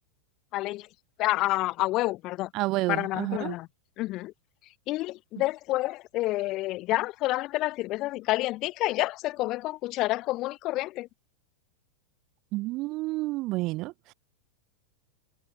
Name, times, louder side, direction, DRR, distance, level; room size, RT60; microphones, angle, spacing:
voice 1, 0.5-0.9 1.2-2.5 2.9-3.7 4.0-4.3 4.9-11.1, left 18 dB, 40° left, 4.4 m, -29 dB
voice 2, 2.5-3.6 12.5-13.9, right 20 dB, 40° right, 2.0 m, -29 dB
figure-of-eight pair, 90°, 0 cm